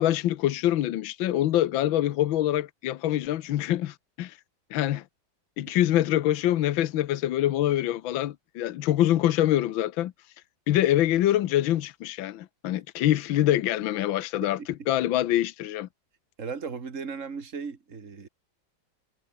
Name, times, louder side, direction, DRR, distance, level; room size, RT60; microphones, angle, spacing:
voice 1, 0.0-4.4 4.7-5.0 5.6-10.1 10.7-14.6 14.9-15.9, left 13 dB, 80° left, 1.6 m, -25 dB
voice 2, 16.4-18.3, right 5 dB, 40° right, 2.6 m, -36 dB
omnidirectional pair, 2.1 m